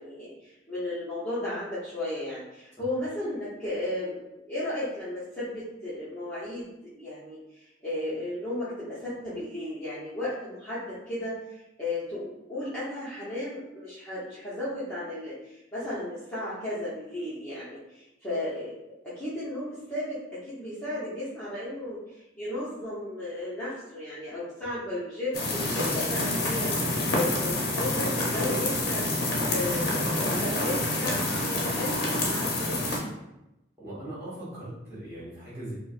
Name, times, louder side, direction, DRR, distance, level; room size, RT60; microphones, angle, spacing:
voice 1, 0.0-4.2 4.5-6.7 7.0-18.7 19.1-29.1 29.5-32.8, left 1 dB, 5° left, -13 dB, 0.9 m, -34 dB
sound 1, 25.3-33.0, left 2 dB, 50° left, 0.7 m, -27 dB
voice 2, 33.8-35.7, right 1 dB, 15° right, -11 dB, 1.4 m, -39 dB
4.4 x 2.1 x 2.5 m, 0.91 s
head